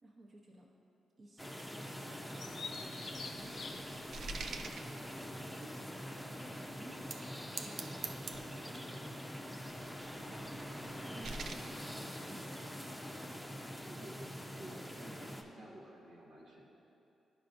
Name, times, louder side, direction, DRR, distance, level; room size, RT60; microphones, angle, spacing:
voice 1, 0.0-0.7 1.2-3.7 4.1-9.3 10.1-11.6 12.0-13.4, right 1 dB, 50° right, -3 dB, 1.0 m, -58 dB
sound 1, 1.4-15.4, equal, ahead, 0.7 m, -45 dB
sound 2, 2.3-5.6 6.2-6.3 6.9-7.3 7.6-9.0 9.7-11.5, right 4 dB, 70° right, 0.4 m, -47 dB
Bird vocalization bird call bird song, 2.4-8.1, left 4 dB, 65° left, 0.5 m, -51 dB
voice 2, 13.9-16.6, right 1 dB, 85° right, -6 dB, 1.3 m, -52 dB
11.0 x 4.8 x 2.6 m, 2.8 s
supercardioid pair, 55°, 0 cm